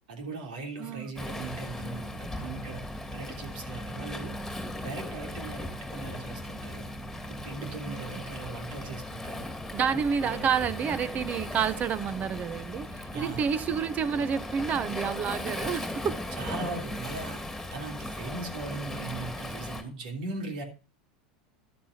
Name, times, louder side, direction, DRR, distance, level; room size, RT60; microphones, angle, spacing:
voice 1, 0.1-2.8 3.1-4.3 4.8-6.8 7.3-9.5 9.9-10.5 13.1-13.5 16.3-20.6, right 3 dB, 75° right, 3.2 m, -39 dB
Waves surf, 1.2-19.8, left 1 dB, 5° left, 2.4 m, -38 dB
voice 2, 7.9-8.2 9.7-16.2, right 7 dB, 35° right, 0.9 m, -29 dB
13.5 x 11.5 x 2.8 m
hypercardioid pair, 95°, 4 cm